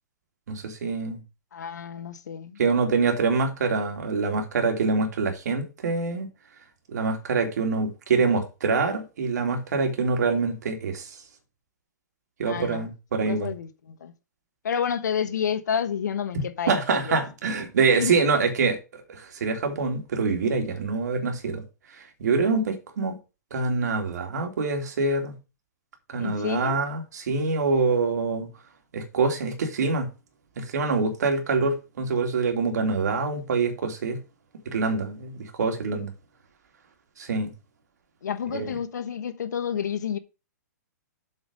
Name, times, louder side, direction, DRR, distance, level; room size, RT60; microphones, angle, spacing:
voice 1, 0.5-1.2 2.6-6.3 6.9-11.1 12.4-13.5 16.7-21.6 21.9-23.1 23.5-25.3 26.1-28.5 28.9-30.1 30.6-34.2 34.6-36.1 37.2-37.5 38.5-38.7, right 4 dB, 70° right, 3.0 m, -25 dB
voice 2, 1.5-2.6 12.4-12.9 13.3-14.1 14.6-17.2 17.9-18.2 26.2-26.8 38.2-40.2, left 8 dB, 75° left, 1.2 m, -30 dB
7.9 x 5.3 x 5.4 m
hypercardioid pair, 125°, 9 cm